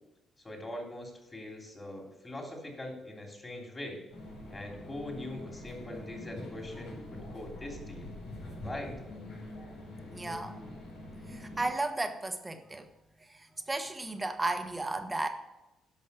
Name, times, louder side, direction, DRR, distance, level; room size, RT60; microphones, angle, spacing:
voice 1, 0.4-4.1 4.5-8.1 8.6-8.9, left 1 dB, 20° left, 1 dB, 3.2 m, -42 dB
sound 1, 4.1-11.7, left 1 dB, 85° left, 4.3 m, -44 dB
voice 2, 10.1-10.5 11.3-12.9 13.3-15.3, right 2 dB, 20° right, 7 dB, 1.2 m, -34 dB
11.0 x 6.3 x 6.8 m, 0.96 s
cardioid pair, 90°, 0 cm